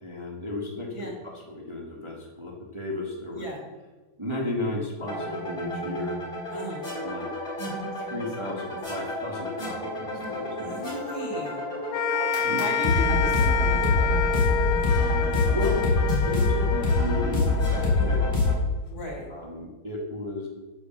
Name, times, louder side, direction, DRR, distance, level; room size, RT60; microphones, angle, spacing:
voice 1, 0.0-3.5 4.2-6.2 7.0-7.3 8.0-10.8 11.2-11.4 12.4-12.6 15.5-15.8 16.1-18.3 19.1-20.5, left 2 dB, 15° right, -2 dB, 1.3 m, -34 dB
sound 1, 5.0-18.5, left 2 dB, 25° left, 3.8 m, -26 dB
voice 2, 6.5-6.9 10.6-11.6 12.5-14.2 17.9-18.2 18.9-19.3, left 1 dB, 50° left, 0 dB, 3.3 m, -36 dB
sound 2, 11.9-18.3, left 7 dB, 75° left, 1.3 m, -28 dB
9.9 x 5.5 x 6.9 m, 1.2 s
omnidirectional pair, 2.1 m